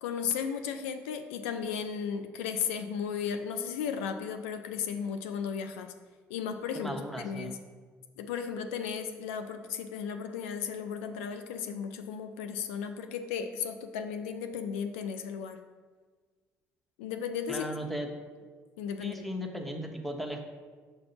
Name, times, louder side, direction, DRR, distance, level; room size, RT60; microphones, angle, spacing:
voice 1, 0.0-5.9 6.3-7.6 8.2-15.6 17.0-17.7 18.8-19.3, left 7 dB, 90° left, 7 dB, 0.3 m, -35 dB
voice 2, 6.7-7.6 17.5-18.1 19.0-20.4, equal, ahead, 3 dB, 0.9 m, -36 dB
6.6 x 2.6 x 5.4 m, 1.5 s
hypercardioid pair, 60°, 7 cm